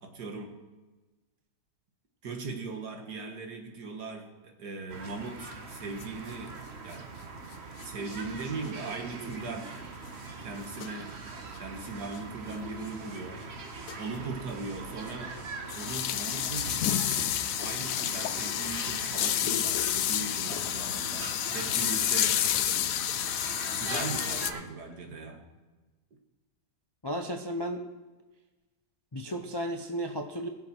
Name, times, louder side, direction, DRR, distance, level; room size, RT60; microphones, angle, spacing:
voice 1, 0.0-0.6 2.2-6.6 6.8-7.1 7.8-9.7 10.4-11.2 11.6-13.4 14.0-15.4 15.7-16.8 17.6-22.4 23.8-25.4, right 3 dB, 75° right, 3 dB, 2.1 m, -39 dB
sound 1, 4.9-24.6, right 4 dB, 45° right, 1.3 m, -42 dB
sound 2, 5.4-5.5 5.7-5.8 6.0-6.1 7.8-7.9 8.1-8.2 9.3-9.4 10.8-11.0 12.1-12.2 12.9-13.0 13.3-13.5 13.9-14.1 14.4-14.5 15.0-24.5, left 11 dB, 70° left, 0.9 m, -30 dB
voice 2, 27.0-27.9 29.1-30.5, equal, 30° left, 4 dB, 0.4 m, -34 dB
21.0 x 7.0 x 4.4 m, 1.2 s
omnidirectional pair, 1.7 m